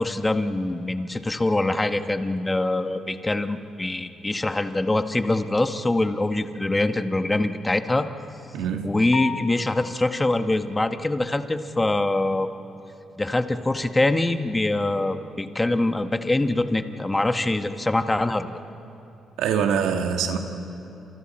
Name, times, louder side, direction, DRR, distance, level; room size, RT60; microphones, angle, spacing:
voice 1, 0.0-8.1 8.8-12.5 13.2-18.5, left 2 dB, 15° left, 8 dB, 1.1 m, -24 dB
voice 2, 8.5-9.0 19.4-20.4, right 7 dB, 90° right, 5 dB, 1.7 m, -24 dB
sound 1, 9.1-10.2, left 7 dB, 65° left, 1.0 m, -33 dB
29.0 x 27.5 x 4.4 m, 2.9 s
cardioid pair, 90°, 0 cm